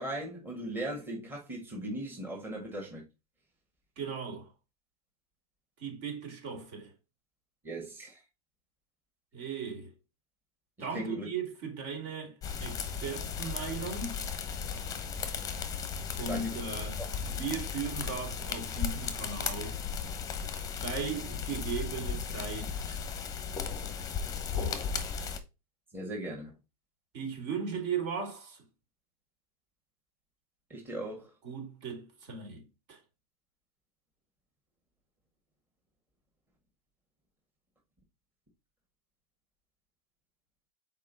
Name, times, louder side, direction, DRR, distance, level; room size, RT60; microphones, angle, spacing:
voice 1, 0.0-3.0 7.6-8.2 10.9-11.3 16.3-16.5 17.0-17.1 25.9-26.5 30.7-31.3, right 1 dB, 10° right, 1.7 m, -38 dB
voice 2, 4.0-4.5 5.8-6.9 9.3-9.9 10.8-14.2 16.1-19.8 20.8-23.0 24.5-24.9 25.2-25.3 27.1-28.6 31.4-33.0, right 5 dB, 50° right, 2.8 m, -37 dB
sound 1, 12.4-25.4, left 6 dB, 20° left, 0.9 m, -36 dB
5.5 x 4.5 x 4.0 m
supercardioid pair, 145°, 20 cm